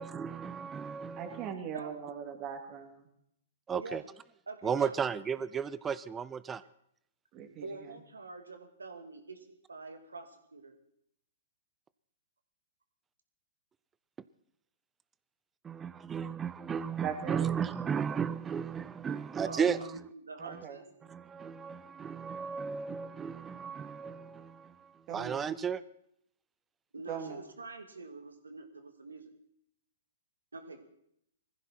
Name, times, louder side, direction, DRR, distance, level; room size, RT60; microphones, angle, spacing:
voice 1, 0.0-1.5 3.7-4.0 4.6-6.6 15.6-19.9 21.1-25.8, right 7 dB, 15° right, 17 dB, 0.6 m, -34 dB
voice 2, 1.2-3.1 7.3-7.9 17.0-17.5 20.4-20.8 25.1-25.5 27.1-27.4, right 7 dB, 35° right, 4 dB, 3.0 m, -40 dB
voice 3, 3.7-4.1 4.5-5.0 7.6-10.7 19.5-20.9 26.9-29.3 30.5-30.8, right 3 dB, 90° right, 7 dB, 2.3 m, -45 dB
20.0 x 15.0 x 4.4 m, 0.74 s
hypercardioid pair, 120°, 0 cm